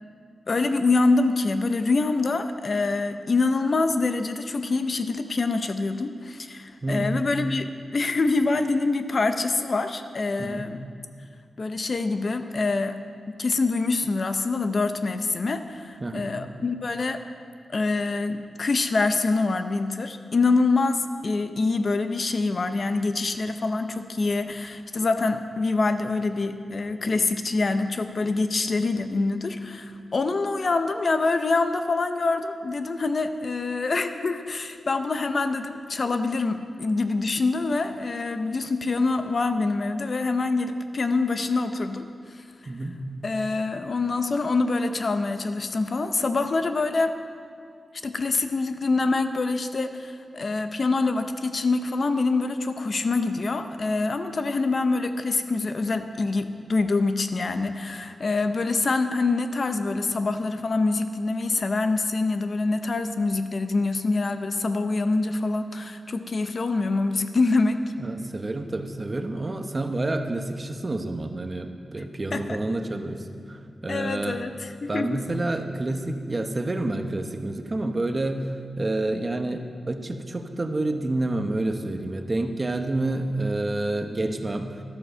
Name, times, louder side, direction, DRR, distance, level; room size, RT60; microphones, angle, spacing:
voice 1, 0.5-7.7 7.9-10.8 11.6-13.0 13.3-17.2 17.7-42.4 43.2-47.1 48.0-67.8 72.3-72.6 73.9-75.2, left 3 dB, 45° left, 8 dB, 0.6 m, -25 dB
voice 2, 6.8-7.2 10.4-10.7 16.0-16.3 42.7-43.0 68.0-74.4 74.9-78.4 78.8-84.8, right 2 dB, 25° right, 6 dB, 0.8 m, -28 dB
12.5 x 9.2 x 6.7 m, 2.3 s
wide cardioid pair, 150°, 0 cm